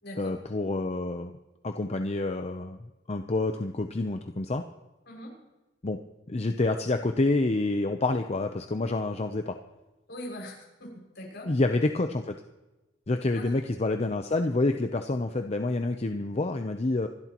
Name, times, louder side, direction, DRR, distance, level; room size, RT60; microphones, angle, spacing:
voice 1, 0.2-1.3 1.6-2.8 3.1-4.6 5.8-6.0 6.3-9.6 11.4-12.3 13.1-17.1, left 2 dB, 35° left, 6 dB, 0.7 m, -28 dB
voice 2, 10.1-11.5 13.3-13.6, left 1 dB, 65° left, -1 dB, 6.1 m, -41 dB
26.0 x 12.0 x 3.0 m, 1.1 s
head